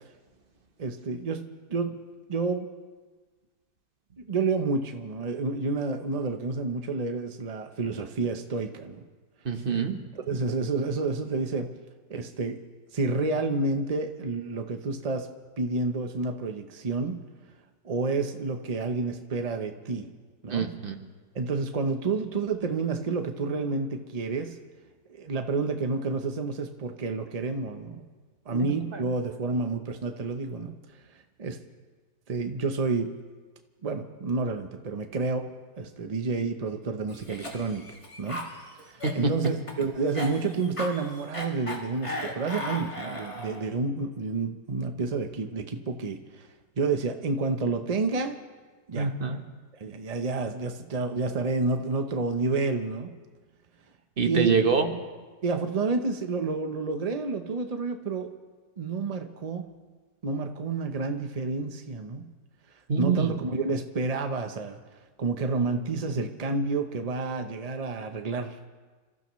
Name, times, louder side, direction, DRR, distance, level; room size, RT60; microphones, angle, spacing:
voice 1, 0.8-1.4 1.7-2.0 2.3-2.7 4.2-9.0 10.1-11.7 12.1-12.6 12.9-15.3 15.6-17.2 17.8-20.1 20.4-20.7 21.3-24.6 25.1-28.1 28.5-30.7 31.4-31.6 32.3-33.1 33.8-35.5 35.8-37.9 38.2-38.4 38.8-46.5 46.8-48.4 48.9-49.1 49.8-53.1 54.2-54.5 55.4-58.3 58.8-59.6 60.2-62.3 63.0-64.8 65.2-68.6, right 3 dB, 65° right, 6 dB, 0.3 m, -29 dB
voice 2, 9.4-10.0 20.5-20.9 28.5-29.0 39.0-39.3 48.9-49.4 54.2-54.9 62.9-63.3, right 5 dB, 35° right, 5 dB, 1.1 m, -26 dB
Cough, 37.1-43.7, left 1 dB, 15° left, 1.7 m, -37 dB
28.5 x 15.0 x 3.1 m, 1.4 s
omnidirectional pair, 2.0 m